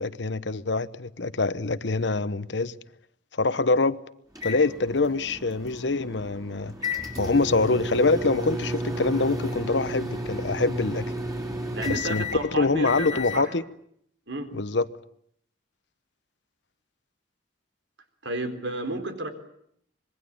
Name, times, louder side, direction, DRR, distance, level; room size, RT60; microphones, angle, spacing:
voice 1, 0.0-2.7 3.3-4.0 4.4-6.8 7.2-11.1 11.8-13.6 14.5-14.9, left 3 dB, 70° left, 1.1 m, -25 dB
sound 1, 4.3-13.5, left 1 dB, 20° right, 4.9 m, -33 dB
voice 2, 11.7-13.4 14.3-14.5 18.2-19.3, right 2 dB, 80° right, 4.2 m, -31 dB
25.5 x 22.5 x 8.6 m
head